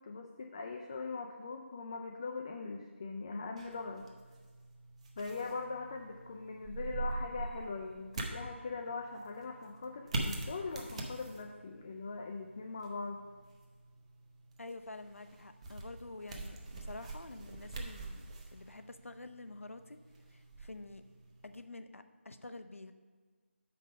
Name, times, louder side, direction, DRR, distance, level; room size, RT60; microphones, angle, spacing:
voice 1, 0.0-4.1 5.2-13.2, left 4 dB, 25° left, 2 dB, 0.4 m, -41 dB
sound 1, 3.6-21.6, right 2 dB, 30° right, 0.8 m, -44 dB
voice 2, 14.6-20.0 20.3-21.0 21.4-22.9, left 2 dB, 80° left, 9 dB, 0.6 m, -48 dB
6.6 x 5.4 x 5.1 m, 1.5 s
figure-of-eight pair, 165°, 7 cm